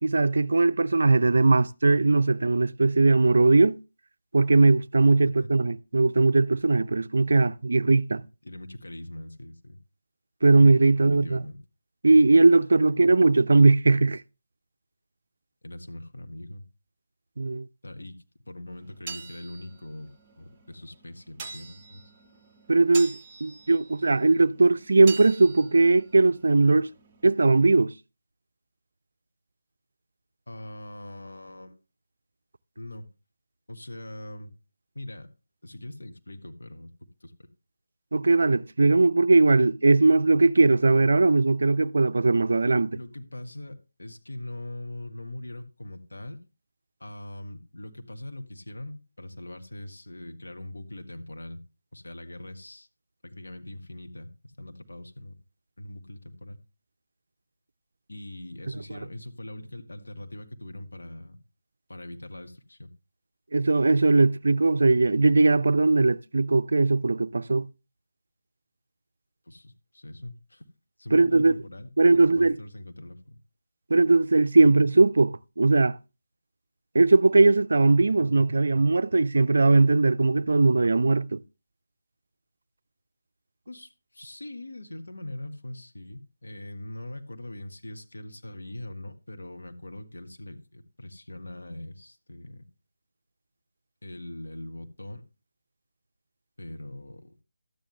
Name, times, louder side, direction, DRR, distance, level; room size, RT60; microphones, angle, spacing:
voice 1, 0.0-3.8 4.3-8.2 10.4-11.4 12.0-14.2 17.4-17.7 22.7-26.9 27.2-27.9 38.1-43.0 63.5-67.7 71.1-71.6 72.0-72.6 73.9-76.0 76.9-81.4, right 3 dB, 65° right, 0.5 m, -20 dB
voice 2, 8.4-9.8 11.0-11.6 15.6-16.6 17.8-18.2 18.4-22.0 30.5-31.8 32.8-33.1 33.7-34.5 34.9-35.3 35.6-36.9 37.2-37.5 42.9-46.4 47.0-51.6 51.9-52.9 53.2-55.4 55.8-56.6 58.1-61.4 61.9-62.9 69.4-70.7 71.0-73.4 83.7-92.6 94.0-95.2 96.6-97.3, left 1 dB, 75° left, 1.6 m, -41 dB
sound 1, 18.7-27.3, right 5 dB, 20° right, 1.2 m, -44 dB
12.5 x 9.7 x 3.3 m
figure-of-eight pair, 160°, 0 cm